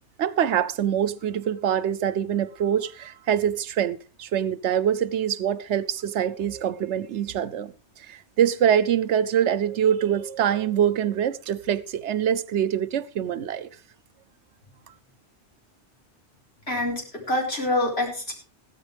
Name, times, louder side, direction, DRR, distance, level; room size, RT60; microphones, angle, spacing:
voice 1, 0.2-7.7 8.1-13.7, right 9 dB, 85° right, 1.1 m, -24 dB
voice 2, 16.7-18.3, left 1 dB, 65° left, 5.0 m, -26 dB
16.0 x 13.0 x 3.4 m
omnidirectional pair, 1.2 m